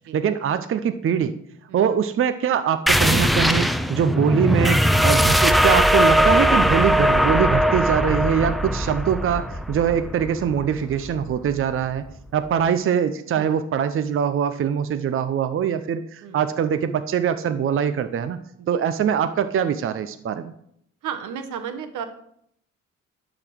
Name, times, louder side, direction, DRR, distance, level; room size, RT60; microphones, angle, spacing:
voice 1, 0.1-1.4 1.7-12.0 12.3-18.4 18.7-20.5, right 8 dB, 45° right, 10 dB, 0.6 m, -23 dB
sound 1, 2.9-12.1, equal, ahead, 0.5 m, -20 dB
voice 2, 21.0-22.1, right 8 dB, 80° right, 8 dB, 1.1 m, -33 dB
11.5 x 3.9 x 6.2 m, 0.70 s
cardioid pair, 90°, 30 cm